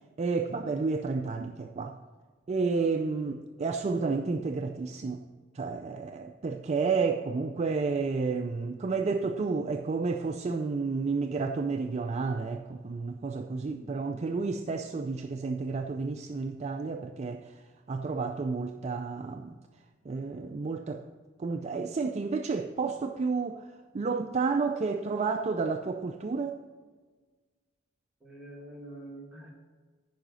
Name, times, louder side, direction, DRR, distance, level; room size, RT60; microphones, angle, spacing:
voice 1, 0.2-1.9 2.5-5.2 5.6-17.4 17.9-19.5 20.1-21.0 21.4-23.6 23.9-26.6, right 4 dB, 35° right, 0.4 m, -31 dB
voice 2, 13.6-14.4 28.2-29.5, right 1 dB, 5° right, 2.0 m, -47 dB
10.5 x 4.9 x 6.1 m
head